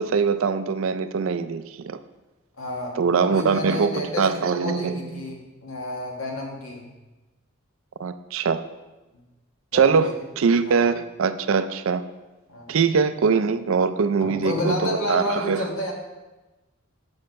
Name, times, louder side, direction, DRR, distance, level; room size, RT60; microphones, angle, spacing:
voice 1, 0.0-2.0 3.0-5.3 8.0-8.6 9.7-12.0 12.7-15.7, right 5 dB, 70° right, 11 dB, 0.4 m, -22 dB
voice 2, 2.6-6.8 9.7-10.1 10.6-10.8 12.5-12.8 14.2-15.9, left 1 dB, 85° left, 0 dB, 1.6 m, -30 dB
7.0 x 5.6 x 5.2 m, 1.1 s
head